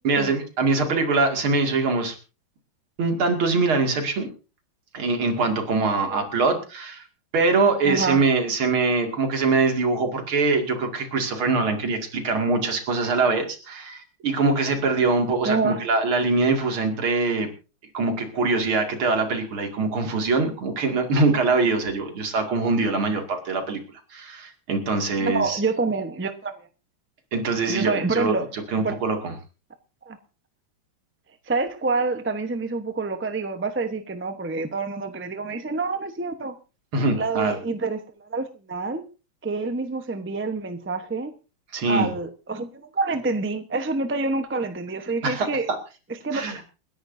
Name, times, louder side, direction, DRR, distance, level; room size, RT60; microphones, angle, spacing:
voice 1, 0.0-2.2 3.0-4.3 4.9-7.0 7.3-17.5 17.9-23.8 24.1-25.6 27.3-29.3 36.9-37.6 41.7-42.1 45.2-45.8 46.3-46.6, right 3 dB, 75° right, 3.2 m, -23 dB
voice 2, 6.0-6.4 7.8-8.2 15.4-15.8 25.2-26.5 27.7-28.5 28.8-29.0 30.1-30.2 31.5-36.5 37.1-39.0 39.4-41.3 41.8-45.7 46.2-46.6, right 3 dB, 15° right, 0.4 m, -27 dB
29.0 x 10.5 x 2.7 m
omnidirectional pair, 2.3 m